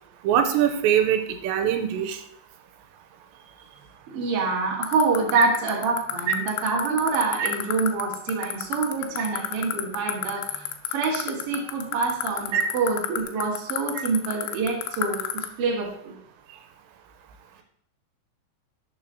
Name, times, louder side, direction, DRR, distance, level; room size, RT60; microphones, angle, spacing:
voice 1, 0.2-2.2 5.4-5.5 6.3-6.4 7.4-7.5 9.2-9.3 12.5-12.6 14.0-14.1, right 9 dB, 90° right, 7 dB, 3.0 m, -22 dB
voice 2, 4.1-16.1, right 4 dB, 45° right, -2 dB, 2.0 m, -26 dB
sound 1, 4.8-15.5, left 16 dB, 90° left, 3.1 m, -28 dB
11.5 x 6.2 x 2.8 m, 0.70 s
omnidirectional pair, 5.1 m